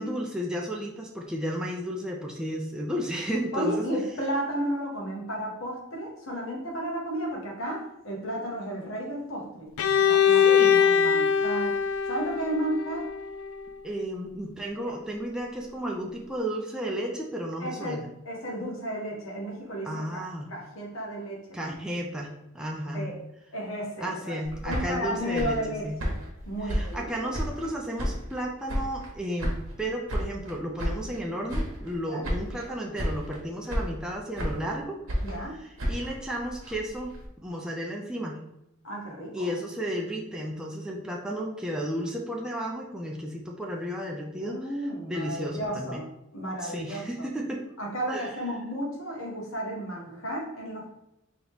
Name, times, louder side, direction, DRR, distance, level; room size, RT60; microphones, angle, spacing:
voice 1, 0.0-3.9 10.4-10.8 13.8-18.1 19.8-20.5 21.5-22.3 22.5-23.1 24.0-26.0 26.6-35.0 35.5-38.4 39.3-44.8 45.1-46.0 46.6-47.6 48.1-48.3, equal, 5° right, -2 dB, 0.4 m, -33 dB
voice 2, 3.5-9.7 10.1-11.7 12.1-13.0 17.6-20.2 20.5-21.7 22.9-23.1 23.5-24.3 24.6-26.2 26.5-27.3 32.1-32.3 35.2-35.5 38.8-39.5 44.4-46.0 46.3-47.3 47.8-50.9, right 1 dB, 70° left, -2 dB, 1.3 m, -33 dB
Bowed string instrument, 9.8-13.6, left 7 dB, 90° left, 0.3 m, -22 dB
sound 1, 24.4-27.7 28.0-29.1 29.4-31.2 31.5-32.0 32.2-32.7 32.9-33.4 33.7-34.7 35.1-37.3, equal, 80° right, 1.2 m, -32 dB
3.9 x 2.9 x 3.4 m, 0.85 s
head